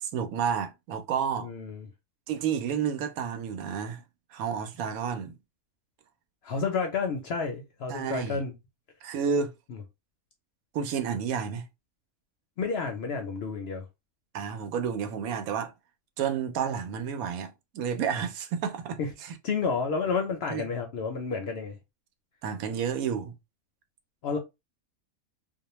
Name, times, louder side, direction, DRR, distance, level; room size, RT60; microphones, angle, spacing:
voice 1, 0.0-1.5 2.3-4.0 4.3-5.3 7.9-8.4 9.0-9.5 10.7-11.7 14.3-15.7 16.2-19.3 20.5-20.6 22.4-23.3, right 7 dB, 80° right, 1.0 m, -30 dB
voice 2, 1.4-1.9 6.4-8.5 9.7-9.8 12.6-13.8 19.0-19.1 19.4-21.8 24.2-24.4, left 5 dB, 65° left, 0.6 m, -30 dB
2.4 x 2.1 x 2.9 m
omnidirectional pair, 1.5 m